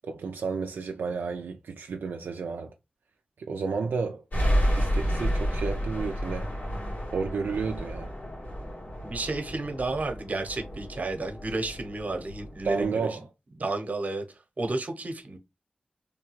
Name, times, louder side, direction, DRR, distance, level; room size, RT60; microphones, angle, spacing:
voice 1, 0.0-2.7 3.4-4.2 4.7-6.5 7.1-8.1 12.6-13.3, right 5 dB, 90° right, 0.3 m, -31 dB
sound 1, 4.3-12.9, equal, 70° left, 1.5 m, -31 dB
voice 2, 9.0-13.2 13.6-15.4, right 2 dB, 50° right, 0.8 m, -32 dB
3.2 x 2.3 x 3.0 m
cardioid pair, 55°, 3 cm